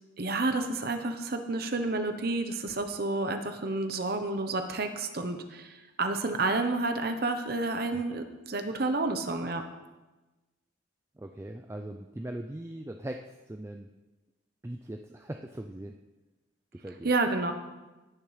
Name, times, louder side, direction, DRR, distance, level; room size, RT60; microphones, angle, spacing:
voice 1, 0.2-9.6 16.9-17.5, right 2 dB, 50° right, 7 dB, 0.8 m, -30 dB
voice 2, 11.2-13.9 14.6-15.9 16.7-17.1, right 1 dB, 15° right, 4 dB, 0.3 m, -40 dB
17.5 x 6.9 x 3.2 m, 1.1 s
head